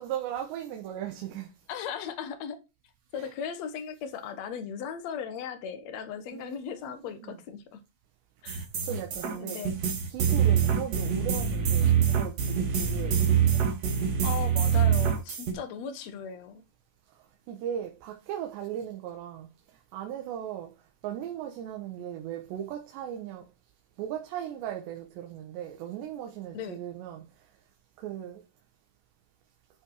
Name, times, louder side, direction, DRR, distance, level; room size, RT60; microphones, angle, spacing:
voice 1, 0.0-1.5 3.2-3.3 6.2-7.4 8.9-9.7 10.1-11.9 12.1-13.3 17.5-19.5 19.9-20.7 21.0-23.5 24.0-27.2 28.0-28.4, right 10 dB, 75° right, 3.3 m, -37 dB
voice 2, 1.7-2.6 3.1-7.8 8.4-8.7 9.3-9.7 10.4-10.6 14.2-16.6 26.5-26.8, left 7 dB, 80° left, 1.5 m, -37 dB
sound 1, 8.5-15.5, right 8 dB, 50° right, 2.3 m, -25 dB
12.0 x 6.1 x 4.9 m
omnidirectional pair, 5.4 m